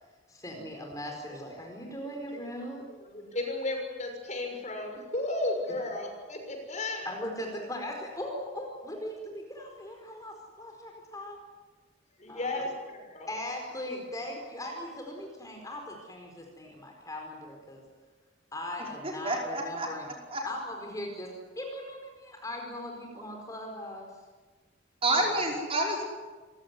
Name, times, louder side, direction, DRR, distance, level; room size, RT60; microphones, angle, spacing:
voice 1, 0.3-2.8 7.0-11.4 12.3-12.6 13.3-17.8 18.5-20.0 20.4-24.1 25.1-25.3, left 1 dB, 20° left, 2 dB, 4.7 m, -39 dB
voice 2, 2.0-2.4 2.9-7.1 12.2-13.3, left 2 dB, 40° left, 3 dB, 6.5 m, -34 dB
voice 3, 18.8-19.9 20.3-20.5 25.0-26.0, right 1 dB, 30° right, 0 dB, 5.4 m, -29 dB
28.5 x 17.0 x 9.8 m, 1.4 s
head